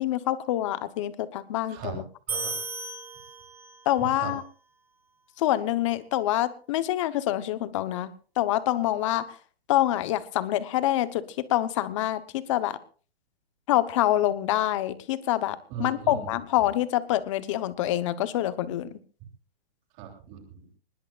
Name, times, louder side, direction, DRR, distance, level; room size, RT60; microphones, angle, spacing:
voice 1, 0.0-2.0 3.8-4.4 5.4-8.1 8.4-9.3 9.7-12.8 13.7-18.9, left 14 dB, 30° left, 14 dB, 1.0 m, -26 dB
voice 2, 1.7-2.0 2.3-2.6 4.0-4.3 15.7-16.3 20.0-20.6, right 9 dB, 25° right, 2 dB, 3.4 m, -38 dB
sound 1, 2.3-3.9, right 3 dB, 5° right, 4.8 m, -35 dB
22.5 x 20.0 x 2.5 m, 0.39 s
hypercardioid pair, 160°, 31 cm